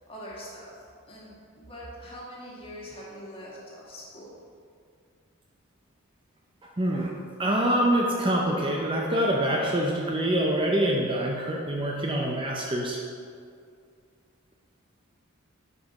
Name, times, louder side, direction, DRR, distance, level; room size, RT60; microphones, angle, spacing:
voice 1, 0.1-0.7 1.1-4.3, equal, 25° left, -6 dB, 1.8 m, -43 dB
voice 2, 6.8-7.1 7.4-13.0, right 1 dB, 25° right, -1 dB, 0.6 m, -25 dB
6.6 x 5.1 x 5.2 m, 2.3 s
head